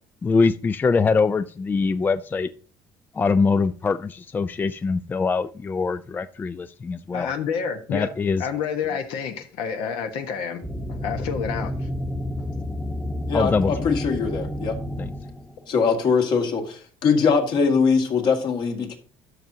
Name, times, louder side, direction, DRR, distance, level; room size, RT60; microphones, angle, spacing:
voice 1, 0.2-2.5 3.1-7.3 7.9-8.5 13.3-13.7 15.0-15.1, left 4 dB, 20° left, 13 dB, 0.3 m, -23 dB
voice 2, 7.1-8.1 8.4-10.6 10.9-11.9, left 7 dB, 75° left, 6 dB, 1.2 m, -29 dB
sound 1, 10.6-15.7, left 1 dB, 5° left, 1.1 m, -30 dB
voice 3, 13.3-14.8 15.7-19.0, left 5 dB, 55° left, 3 dB, 2.0 m, -22 dB
12.5 x 6.1 x 2.8 m, 0.41 s
cardioid pair, 110°, 9 cm